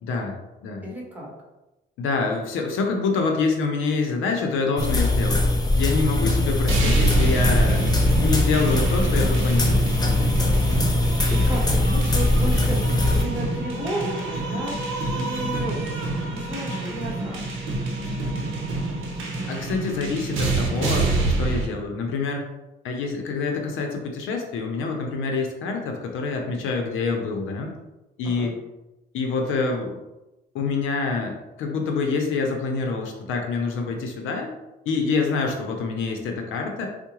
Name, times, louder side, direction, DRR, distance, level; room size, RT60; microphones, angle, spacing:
voice 1, 0.0-0.4 0.6-0.8 2.0-5.4 5.8-9.9 19.5-22.5 22.8-27.7 28.2-28.6 29.1-30.0 30.5-34.5 34.9-36.9, left 4 dB, 85° left, 2 dB, 0.6 m, -26 dB
voice 2, 0.8-1.3 6.2-6.5 10.6-12.8 13.1-14.7 15.1-15.8 16.3-17.4 28.2-28.6, right 1 dB, 10° right, -4 dB, 1.3 m, -33 dB
sound 1, 4.8-13.2, left 2 dB, 20° left, 0.6 m, -21 dB
sound 2, 6.7-21.7, right 2 dB, 85° right, 0.7 m, -27 dB
4.5 x 2.1 x 2.9 m, 0.99 s
cardioid pair, 90°, 20 cm